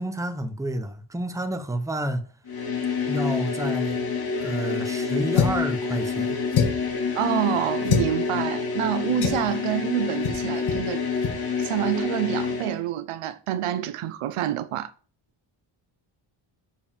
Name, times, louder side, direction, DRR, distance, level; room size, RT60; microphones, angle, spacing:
voice 1, 0.0-2.2 3.1-4.0 4.4-6.4, right 1 dB, 5° right, 0.9 m, -29 dB
sound 1, 2.5-12.8, left 5 dB, 45° left, 3.2 m, -28 dB
sound 2, 5.3-5.7 6.5-6.9 7.9-8.1 9.2-9.5 10.2-10.4 10.7-10.8 11.2-11.4, left 6 dB, 75° left, 1.8 m, -24 dB
voice 2, 7.1-11.0 11.6-14.9, right 13 dB, 90° right, 0.9 m, -27 dB
7.3 x 4.7 x 7.0 m
wide cardioid pair, 150°, 50 cm